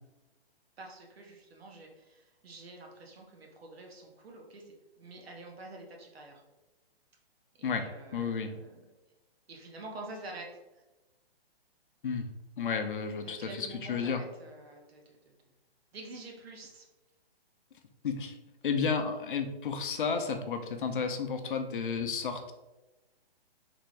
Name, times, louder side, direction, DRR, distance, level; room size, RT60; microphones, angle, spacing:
voice 1, 0.8-6.4 7.6-8.9 9.5-10.6 13.2-15.3 15.9-16.9, right 2 dB, 75° right, 0 dB, 1.0 m, -47 dB
voice 2, 8.1-8.5 12.0-12.3 12.6-14.2 18.0-18.3 18.6-22.5, left 5 dB, 55° left, 6 dB, 0.5 m, -32 dB
3.4 x 2.5 x 3.1 m, 1.1 s
hypercardioid pair, 175°, 31 cm